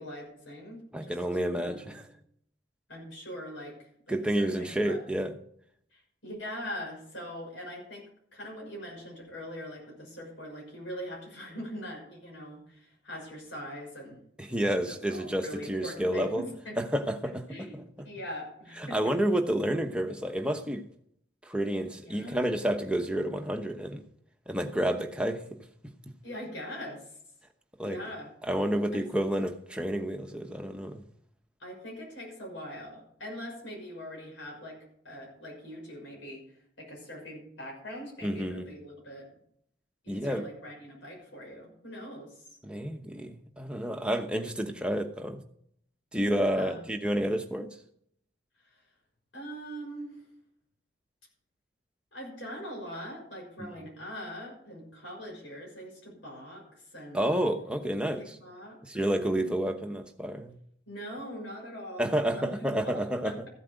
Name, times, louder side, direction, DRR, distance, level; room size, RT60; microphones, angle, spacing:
voice 1, 0.0-1.2 1.6-2.0 2.9-5.0 5.9-14.2 14.9-16.8 17.5-17.8 18.0-19.1 22.0-22.4 26.2-27.0 27.8-28.3 28.9-29.0 31.6-34.8 35.0-36.4 36.8-39.3 40.0-42.4 46.2-46.8 48.6-48.8 49.3-50.2 52.1-57.2 58.2-58.8 59.2-59.5 60.9-63.5, equal, 85° left, -1 dB, 6.3 m, -42 dB
voice 2, 0.9-2.0 4.1-5.3 14.4-16.4 16.8-17.8 18.8-20.8 21.4-24.0 24.5-25.4 27.8-28.0 28.4-31.0 38.2-38.6 40.1-40.4 42.6-45.4 46.1-47.7 53.6-53.7 57.1-58.4 58.8-60.6 62.0-63.3, right 1 dB, 5° right, 4 dB, 1.0 m, -30 dB
14.5 x 8.4 x 5.1 m, 0.68 s
head